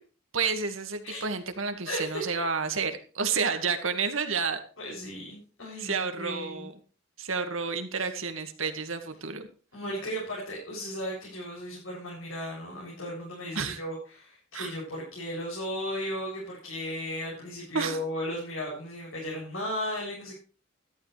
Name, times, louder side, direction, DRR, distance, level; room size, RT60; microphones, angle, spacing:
voice 1, 0.3-4.6 5.8-6.7 7.2-9.5 13.6-13.8 14.5-14.7 17.7-18.0, right 5 dB, 70° right, 6 dB, 2.0 m, -30 dB
voice 2, 1.9-2.2 4.8-6.7 8.0-8.1 9.7-20.3, equal, 70° left, -5 dB, 7.7 m, -35 dB
15.0 x 13.0 x 3.4 m, 0.38 s
head